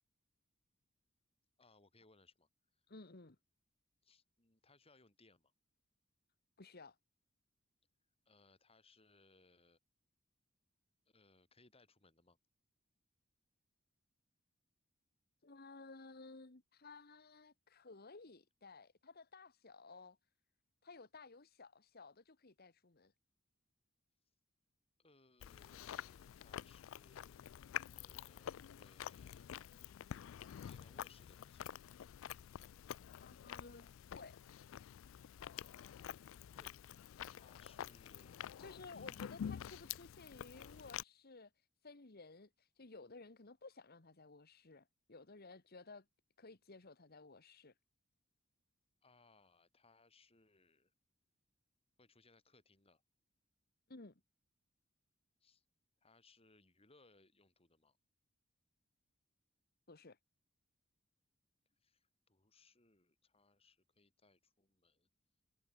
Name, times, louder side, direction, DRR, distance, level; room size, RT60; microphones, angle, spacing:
voice 1, 1.6-2.5 4.0-5.5 8.3-9.8 11.1-12.4 25.0-27.4 27.9-29.8 30.5-31.8 35.5-35.7 37.3-38.5 38.9-39.3 49.0-50.9 52.0-53.0 55.4-55.6 56.0-58.0 61.8-65.1, left 3 dB, 30° left, 4.3 m, -69 dB
voice 2, 2.9-3.4 6.6-7.0 15.4-20.2 20.8-23.1 33.2-34.4 38.6-46.0 46.4-47.7 53.9-54.2 59.9-60.2, left 3 dB, 50° left, 1.5 m, -56 dB
Chewing mastication, 25.4-41.0, left 9 dB, 70° left, 0.3 m, -48 dB
head